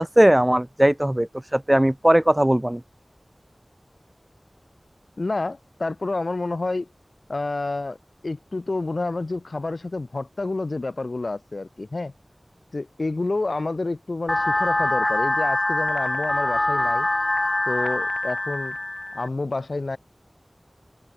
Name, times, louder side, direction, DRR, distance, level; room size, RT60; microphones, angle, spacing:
voice 1, 0.0-2.8, right 1 dB, 15° right, 0.6 m, -19 dB
voice 2, 5.2-6.9 7.3-8.0 8.2-12.1 12.7-17.1 17.7-18.8 19.1-20.0, left 2 dB, 70° left, 2.7 m, -29 dB
sound 1, 14.3-19.3, left 2 dB, 40° left, 1.4 m, -24 dB
wide cardioid pair, 50°, 0 cm